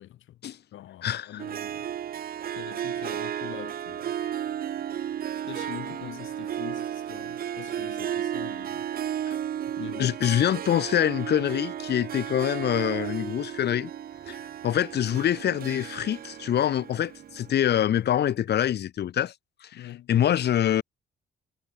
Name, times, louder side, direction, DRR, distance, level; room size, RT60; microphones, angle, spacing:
voice 1, 0.0-0.4 0.7-1.9 2.5-4.3 5.3-8.9 9.8-10.2 19.7-20.1, left 13 dB, 80° left, 6.8 m, -43 dB
voice 2, 1.0-1.4 9.3-9.4 10.0-13.9 14.3-19.3 20.1-20.8, left 10 dB, 55° left, 0.8 m, -25 dB
Harp, 1.4-17.9, right 10 dB, 50° right, 0.6 m, -34 dB
cardioid pair, 90°, 20 cm